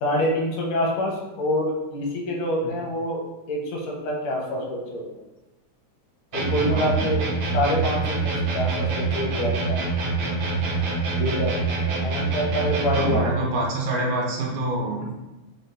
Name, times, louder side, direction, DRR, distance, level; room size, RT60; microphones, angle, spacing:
voice 1, 0.0-5.0 6.3-7.2 7.5-9.8 11.2-11.5 11.8-13.5, left 1 dB, 85° left, 0 dB, 2.4 m, -26 dB
sound 1, 6.3-13.3, right 4 dB, 70° right, 1.5 m, -25 dB
voice 2, 6.7-7.1 13.0-15.1, right 2 dB, 85° right, -2 dB, 2.2 m, -27 dB
5.9 x 2.2 x 3.8 m, 1.0 s
omnidirectional pair, 3.4 m